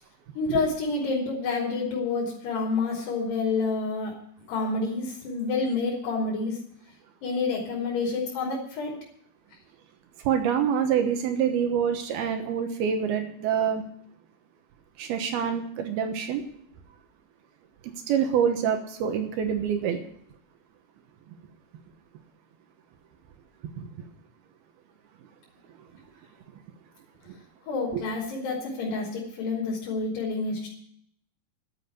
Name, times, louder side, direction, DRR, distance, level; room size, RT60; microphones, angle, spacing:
voice 1, 0.4-4.1 4.5-6.6 7.2-9.0 27.7-30.7, left 4 dB, 85° left, -3 dB, 5.2 m, -28 dB
voice 2, 10.3-13.8 15.0-16.4 18.1-20.0 23.8-23.9 27.9-28.0, right 8 dB, 75° right, 6 dB, 2.9 m, -26 dB
12.5 x 7.8 x 9.4 m, 0.68 s
omnidirectional pair, 4.6 m